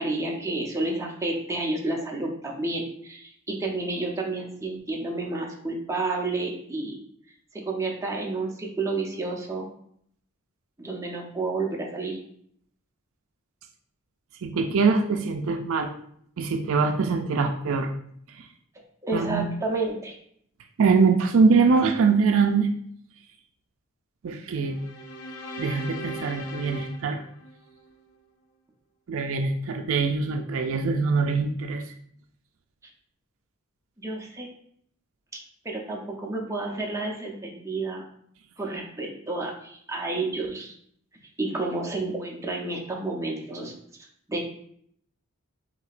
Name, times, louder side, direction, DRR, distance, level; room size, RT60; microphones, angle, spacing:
voice 1, 0.0-7.0 7.5-9.7 10.8-12.2 19.0-20.1 34.0-34.5 35.3-38.0 38.6-40.7 41.4-43.7 44.3-44.4, right 2 dB, 15° right, -1 dB, 0.7 m, -30 dB
voice 2, 14.4-15.9 16.4-17.9 18.4-18.5 19.1-19.5 20.8-22.7 24.2-24.8 25.6-27.2 29.1-31.8, right 4 dB, 65° right, 5 dB, 0.4 m, -23 dB
sound 1, 24.7-28.0, equal, 80° left, 0.6 m, -39 dB
6.0 x 2.8 x 2.5 m, 0.66 s
head